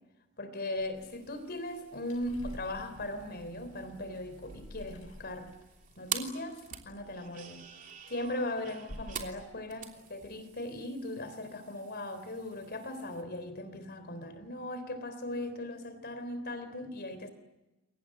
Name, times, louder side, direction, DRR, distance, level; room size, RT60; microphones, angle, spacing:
voice 1, 0.4-5.6 6.0-7.7 8.1-17.3, left 1 dB, 50° left, 3.5 m, -38 dB
sound 1, 0.7-7.7 8.0-8.5 8.9-9.3 9.6-10.8, left 1 dB, 80° left, 7.7 m, -50 dB
sound 2, 0.9-13.2, right 8 dB, 40° right, 3.1 m, -47 dB
29.0 x 23.5 x 7.7 m
head